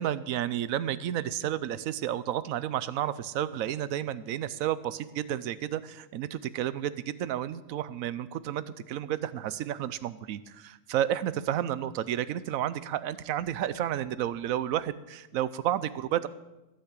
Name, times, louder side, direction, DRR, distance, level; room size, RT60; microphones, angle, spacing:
voice 1, 0.0-16.3, right 11 dB, 90° right, 16 dB, 1.1 m, -31 dB
16.0 x 5.8 x 8.2 m, 1.0 s
omnidirectional pair, 1.4 m